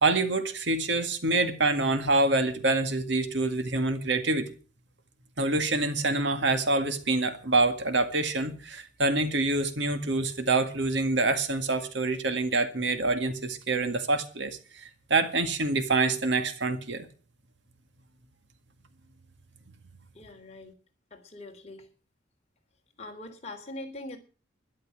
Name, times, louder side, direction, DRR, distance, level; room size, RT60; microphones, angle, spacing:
voice 1, 0.0-4.5 5.4-17.1, right 2 dB, 65° right, 1.9 m, -26 dB
voice 2, 20.1-20.8 21.1-21.9 23.0-24.2, left 2 dB, 35° left, 3.6 m, -42 dB
12.5 x 11.5 x 7.5 m
head